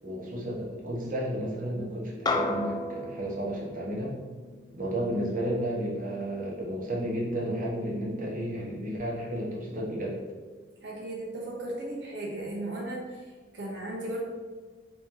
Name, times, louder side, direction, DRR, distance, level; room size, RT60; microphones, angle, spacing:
voice 1, 0.0-4.2 4.7-10.2, right 1 dB, 45° right, -4 dB, 0.9 m, -32 dB
sound 1, 2.3-6.9, left 2 dB, 25° left, 0.3 m, -35 dB
voice 2, 10.8-14.2, right 1 dB, 75° right, -3 dB, 0.8 m, -36 dB
4.1 x 2.9 x 3.6 m, 1.4 s
head